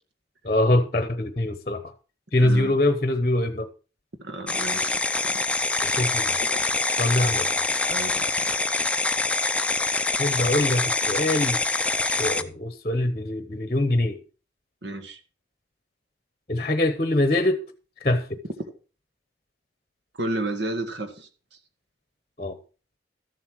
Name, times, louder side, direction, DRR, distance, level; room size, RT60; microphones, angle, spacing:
voice 1, 0.4-1.9 2.3-3.7 5.8-6.4 7.0-7.6 10.2-11.6 12.0-14.2 16.5-17.7 18.0-18.4 22.4-22.6, left 1 dB, 35° left, 0.9 m, -24 dB
voice 2, 2.4-2.7 4.2-5.0 5.3-5.4 6.4-6.6 7.9-8.4 14.8-15.2 20.1-21.3, right 1 dB, 70° right, 1.8 m, -32 dB
sound 1, 4.5-12.4, left 3 dB, 5° left, 0.5 m, -25 dB
13.5 x 7.5 x 4.7 m
head